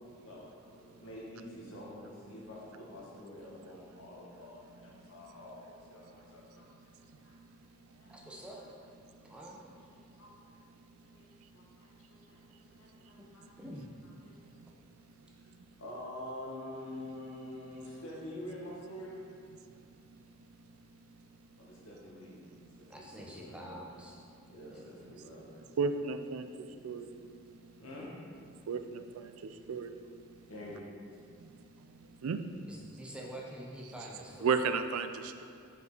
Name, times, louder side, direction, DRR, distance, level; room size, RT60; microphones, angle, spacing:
voice 1, 0.7-7.6 8.0-8.1 8.6-8.7 9.2-9.3 10.2-10.6 11.0-13.6 14.2-14.4 15.4-15.5 15.8-19.1 21.6-22.5 22.8-23.6 24.4-25.5 27.8-28.1 30.5-30.9, left 1 dB, 90° left, -4 dB, 1.5 m, -47 dB
voice 2, 8.1-8.7 9.2-9.7 12.9-13.0 13.6-13.9 22.9-24.2 24.7-25.1 31.6-31.7 32.7-34.6, equal, 5° right, -2 dB, 0.6 m, -47 dB
voice 3, 25.8-26.4 26.8-27.1 28.7-28.8 29.2-29.3 29.7-29.9 32.2-32.4 34.4-35.4, right 5 dB, 85° right, 9 dB, 0.4 m, -31 dB
5.4 x 5.3 x 3.9 m, 2.4 s
head